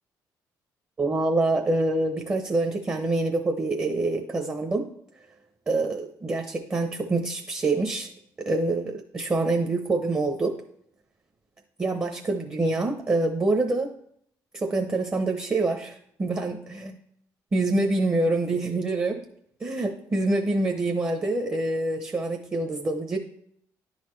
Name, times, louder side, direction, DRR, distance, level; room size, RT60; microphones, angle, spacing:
voice 1, 1.0-4.9 5.7-8.1 8.4-10.6 11.8-13.9 14.5-17.0 17.5-19.2 19.6-23.2, right 2 dB, 30° right, 3 dB, 0.9 m, -26 dB
10.0 x 4.1 x 3.2 m, 0.69 s
supercardioid pair, 60°, 8 cm